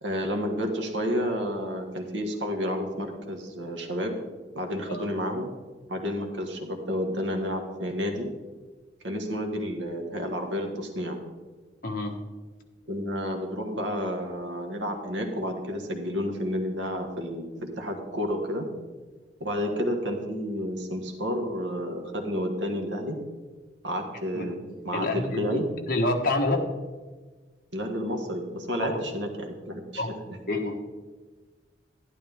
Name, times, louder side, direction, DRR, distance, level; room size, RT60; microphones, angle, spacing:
voice 1, 0.0-4.1 4.5-5.5 5.9-8.3 9.0-11.2 12.9-18.7 19.4-23.2 23.8-25.7 27.7-30.0, equal, 85° right, 3 dB, 1.6 m, -30 dB
voice 2, 24.9-25.6 25.9-26.6 28.8-29.0 30.0-30.1 30.5-30.8, left 2 dB, 50° left, 1 dB, 1.4 m, -27 dB
11.5 x 10.5 x 3.6 m, 1.3 s
head